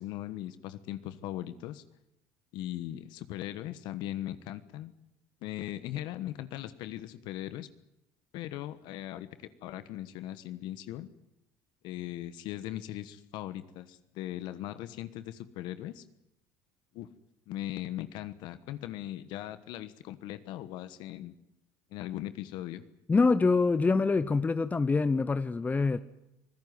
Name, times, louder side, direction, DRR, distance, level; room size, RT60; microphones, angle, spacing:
voice 1, 0.0-1.8 2.5-4.9 5.4-7.7 8.3-11.1 11.8-16.0 16.9-17.1 17.5-21.3 21.9-22.8, left 13 dB, 70° left, 13 dB, 1.3 m, -39 dB
voice 2, 23.1-26.0, left 4 dB, 20° left, 14 dB, 0.8 m, -25 dB
25.5 x 15.5 x 9.6 m, 0.83 s
supercardioid pair, 90°, 8 cm